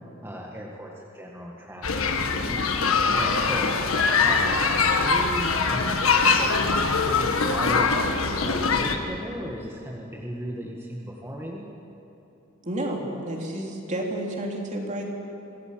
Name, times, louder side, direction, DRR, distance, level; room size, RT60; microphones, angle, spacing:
voice 1, 0.2-3.7 4.2-4.7 5.0-6.5 7.1-8.0 8.4-11.6, equal, 10° right, -3 dB, 1.7 m, -36 dB
sound 1, 1.8-9.0, left 4 dB, 90° left, 1.6 m, -23 dB
voice 2, 4.1-4.5 12.6-15.0, right 1 dB, 35° right, 0 dB, 3.2 m, -31 dB
24.5 x 16.5 x 7.6 m, 2.8 s
head